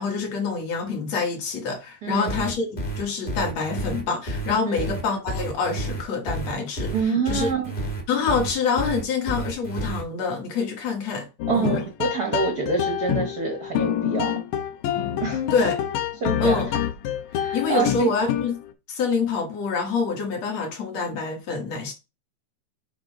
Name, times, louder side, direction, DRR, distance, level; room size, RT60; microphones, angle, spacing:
voice 1, 0.0-6.9 7.3-7.5 8.1-11.8 15.5-15.7 16.4-16.7 17.5-18.6 18.9-21.9, left 5 dB, 65° left, 2.6 m, -26 dB
voice 2, 2.0-2.4 4.6-4.9 6.9-7.7 11.5-14.3 15.2-15.4 16.2-16.6 17.3-18.1, right 5 dB, 75° right, 0.8 m, -26 dB
sound 1, 2.3-10.0, right 1 dB, 30° left, 1.0 m, -30 dB
sound 2, 11.4-18.7, left 10 dB, 85° left, 2.1 m, -27 dB
7.6 x 3.1 x 4.6 m
omnidirectional pair, 3.3 m